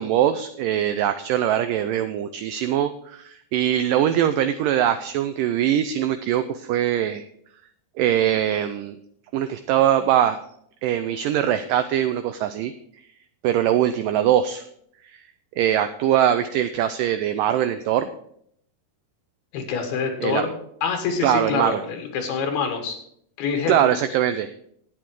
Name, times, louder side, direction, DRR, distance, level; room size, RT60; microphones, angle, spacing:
voice 1, 0.0-7.3 8.0-9.0 9.3-10.4 10.8-12.7 13.4-14.6 15.0-15.2 15.6-18.1 20.2-20.5 21.2-21.8 23.7-24.5, right 11 dB, 85° right, 10 dB, 1.9 m, -22 dB
voice 2, 19.5-20.5 20.8-23.0 23.4-24.0, left 5 dB, 85° left, 4 dB, 3.6 m, -26 dB
12.5 x 8.9 x 4.7 m, 0.68 s
omnidirectional pair, 4.4 m